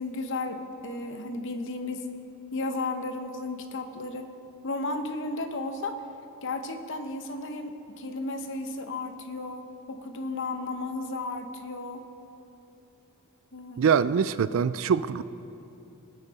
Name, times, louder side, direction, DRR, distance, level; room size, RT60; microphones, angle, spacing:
voice 1, 0.0-2.1 2.5-4.3 4.6-6.0 6.4-12.0 13.5-13.9, left 2 dB, 55° left, 7 dB, 0.8 m, -34 dB
voice 2, 13.8-15.2, right 6 dB, 60° right, 15 dB, 0.3 m, -23 dB
18.5 x 9.1 x 4.1 m, 2.8 s
head